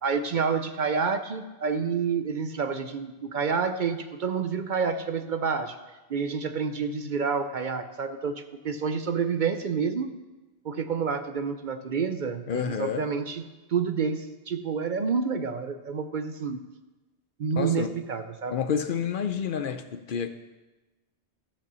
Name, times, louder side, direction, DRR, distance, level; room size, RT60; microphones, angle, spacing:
voice 1, 0.0-5.8 6.1-10.1 10.6-13.4 13.7-16.6 17.4-18.6, right 5 dB, 55° right, 9 dB, 0.7 m, -28 dB
voice 2, 12.5-13.0 17.5-17.9 18.5-20.3, left 7 dB, 60° left, 10 dB, 0.7 m, -29 dB
13.5 x 5.4 x 6.8 m, 1.1 s
omnidirectional pair, 1.1 m